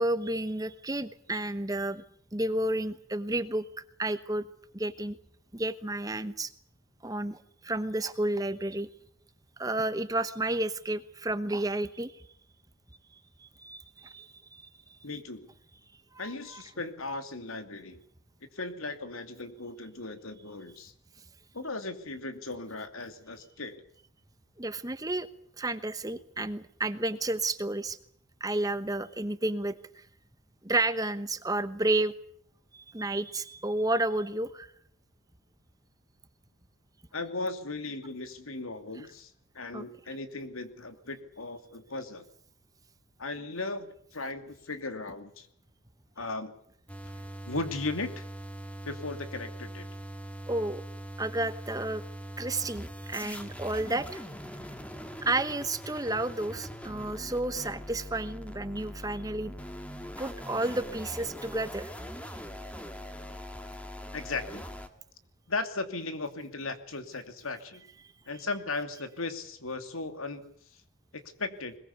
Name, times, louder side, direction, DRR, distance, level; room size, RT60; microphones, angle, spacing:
voice 1, 0.0-2.0 2.3-3.6 4.0-4.4 4.7-5.2 5.5-6.5 7.0-7.4 7.6-8.9 9.6-12.1 13.4-14.6 24.6-25.3 25.6-28.0 28.4-29.7 30.6-32.1 32.7-34.7 39.7-39.8 50.5-50.8 51.2-52.0 52.4-54.2 55.2-59.5 60.2-61.9, right 2 dB, 15° right, 12 dB, 1.0 m, -31 dB
voice 2, 15.0-15.5 16.2-18.0 18.5-20.9 21.5-23.8 37.1-42.3 43.2-45.5 46.2-46.5 47.4-48.3 48.8-49.9 64.1-64.6 65.5-67.8 68.3-70.8 71.1-71.8, left 3 dB, 80° left, 9 dB, 2.8 m, -37 dB
sound 1, 46.9-64.9, equal, 5° left, 1.8 m, -42 dB
21.5 x 21.0 x 8.4 m, 0.64 s
head